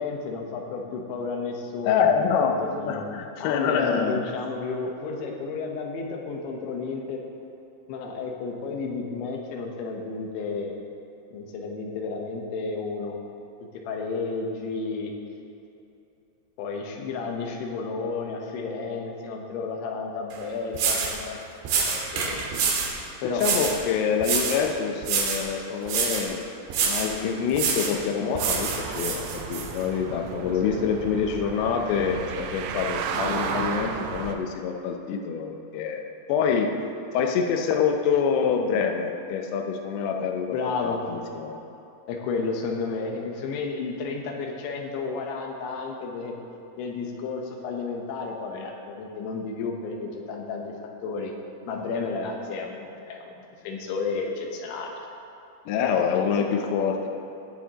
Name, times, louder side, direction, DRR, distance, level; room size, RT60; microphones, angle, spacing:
voice 1, 0.0-2.1 2.4-3.0 3.4-7.2 7.9-10.8 11.3-13.1 13.6-15.1 16.6-22.4 23.2-23.7 30.5-31.0 40.5-41.0 42.1-46.3 46.8-50.7 51.0-51.3 51.7-55.1 56.4-56.5, left 4 dB, 75° left, 1 dB, 3.2 m, -32 dB
voice 2, 1.8-2.6 2.8-4.2 23.3-26.4 26.8-36.7 37.1-40.5 40.8-41.5 55.7-57.1, left 6 dB, 90° left, 3 dB, 2.3 m, -26 dB
sound 1, 20.3-20.4 20.7-21.2 21.7-23.0 23.4-23.8 24.2-24.7 25.0-25.5 25.9-26.3 26.7-27.1 27.5-28.0 28.4-29.7, right 5 dB, 70° right, 3.2 m, -26 dB
sound 2, 28.4-34.4, right 6 dB, 85° right, 3.3 m, -33 dB
19.5 x 7.2 x 3.0 m, 2.8 s
omnidirectional pair, 5.7 m